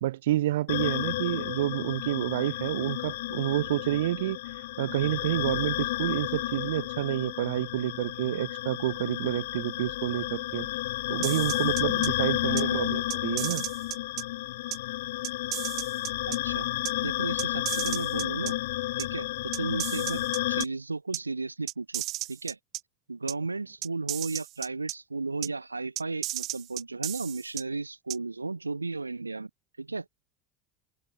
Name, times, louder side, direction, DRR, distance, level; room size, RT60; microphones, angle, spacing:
voice 1, 0.0-10.7 11.1-13.7, right 14 dB, 70° right, 2.7 m, -29 dB
sound 1, 0.7-20.6, left 17 dB, 70° left, 2.0 m, -31 dB
sound 2, 11.2-12.1 12.6-12.7 13.1-14.2 14.7-14.8 15.2-16.4 16.9-17.0 17.4-18.5 19.0-19.1 19.5-20.7 21.1-21.2 21.7-22.8 23.3-23.4 23.8-24.9 25.4-25.5 26.0-27.6 28.1-28.2, right 17 dB, 55° right, 5.6 m, -34 dB
voice 2, 12.5-12.9 16.3-16.7 17.0-18.5 19.0-22.0 22.3-22.6 23.1-29.5 29.8-30.0, right 3 dB, 90° right, 3.3 m, -34 dB
figure-of-eight pair, 70°, 0 cm